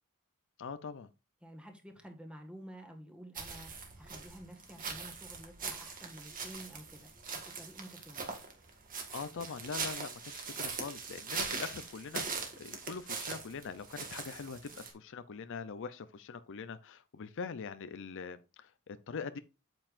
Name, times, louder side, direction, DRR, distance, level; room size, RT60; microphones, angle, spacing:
voice 1, 0.6-1.1 9.1-19.4, left 5 dB, 60° left, 0.5 m, -43 dB
voice 2, 1.4-8.3, equal, 5° right, 1.7 m, -51 dB
sound 1, 3.4-14.9, right 5 dB, 40° right, 1.8 m, -41 dB
8.8 x 8.0 x 2.5 m
head